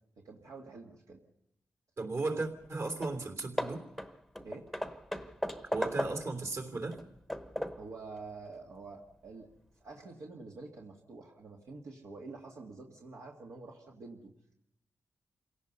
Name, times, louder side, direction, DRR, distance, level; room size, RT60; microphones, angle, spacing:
voice 1, 0.2-1.2 4.4-4.7 7.8-9.5 9.8-14.3, right 3 dB, 65° right, -1 dB, 2.2 m, -47 dB
voice 2, 2.0-3.8 5.7-7.0, right 3 dB, 50° right, 5 dB, 3.1 m, -35 dB
Hammer / Wood, 2.6-2.7 3.0-3.2 3.6-6.4 6.9-7.9, left 1 dB, ahead, 1.1 m, -37 dB
27.5 x 17.5 x 5.5 m, 0.79 s
wide cardioid pair, 130°, 6 cm